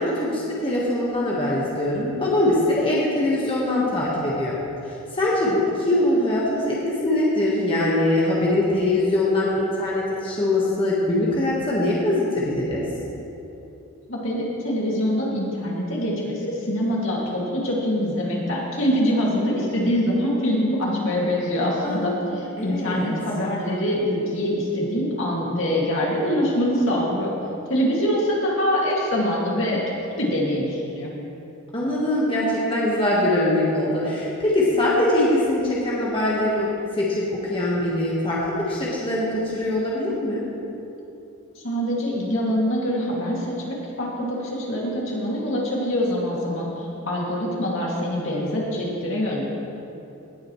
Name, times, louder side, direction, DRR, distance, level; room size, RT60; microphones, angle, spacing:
voice 1, 0.0-4.6 5.1-12.8 21.8-22.1 22.6-23.1 31.7-36.7 36.9-38.4 38.7-40.4, left 1 dB, 25° left, -6 dB, 1.4 m, -22 dB
voice 2, 14.1-27.3 27.7-29.8 30.2-31.1 41.6-49.4, equal, 65° left, -4 dB, 2.4 m, -24 dB
18.0 x 8.7 x 3.2 m, 2.9 s
head